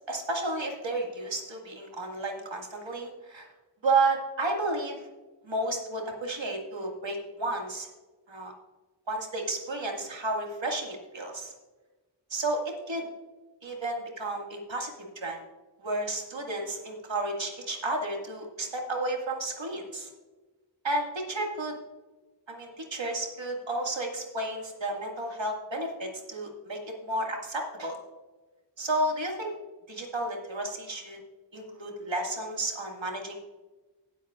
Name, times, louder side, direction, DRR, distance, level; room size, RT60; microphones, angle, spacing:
voice 1, 0.1-3.5 3.8-5.0 5.4-7.9 8.3-8.5 9.1-11.5 12.3-13.1 13.6-15.5 15.8-20.1 20.8-21.7 22.5-28.0 28.8-29.5 29.9-31.2 31.5-33.3, right 2 dB, 85° right, 1 dB, 2.0 m, -32 dB
17.5 x 8.0 x 2.4 m, 1.2 s
wide cardioid pair, 65°, 44 cm